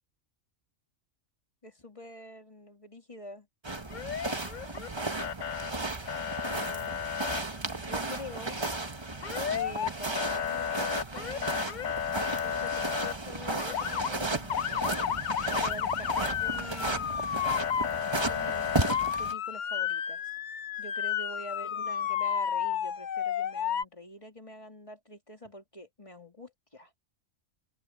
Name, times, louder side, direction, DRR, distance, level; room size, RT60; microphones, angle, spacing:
voice 1, 1.6-3.5 6.5-6.9 7.8-8.6 9.5-12.0 12.4-17.2 18.2-20.3 20.8-26.9, left 1 dB, 25° left, 2.9 m, -46 dB
sound 1, 3.6-19.3, right 2 dB, 20° right, 1.4 m, -34 dB
Motor vehicle (road) / Siren, 3.9-4.9 5.2-5.7 6.1-7.4 9.2-9.9 10.2-13.1 13.6-14.1 14.5-23.8, left 9 dB, 50° left, 0.6 m, -32 dB
omnidirectional pair, 1.3 m